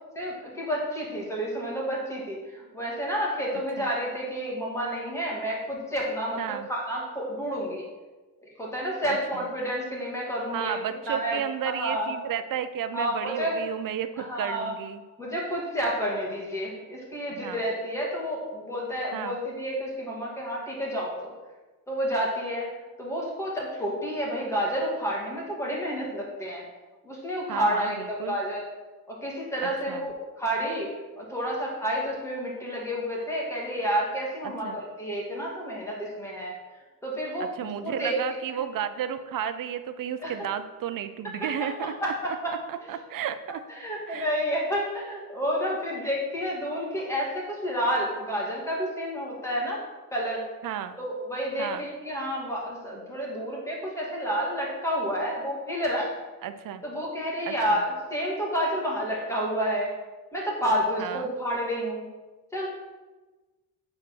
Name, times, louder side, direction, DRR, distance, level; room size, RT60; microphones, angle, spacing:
voice 1, 0.2-7.8 8.6-10.8 11.1-12.1 12.9-13.5 14.2-14.7 15.2-21.3 21.9-22.7 23.0-26.6 27.0-28.7 29.1-30.9 31.2-36.5 37.0-38.2 40.2-40.5 41.6-42.5 42.8-43.0 43.7-49.8 50.1-50.4 51.0-56.1 56.8-59.9 60.3-62.1 62.5-62.7, equal, 10° left, -3 dB, 2.2 m, -30 dB
voice 2, 6.4-6.7 9.0-9.4 10.5-15.0 17.3-17.6 19.1-19.4 27.5-28.4 29.6-30.1 34.6-34.8 37.6-42.1 42.7-43.6 44.1-44.3 50.6-51.0 51.6-51.8 56.4-56.8 57.5-57.8 61.0-61.3, right 9 dB, 65° right, 10 dB, 0.7 m, -33 dB
8.9 x 4.3 x 6.2 m, 1.2 s
wide cardioid pair, 165°, 35 cm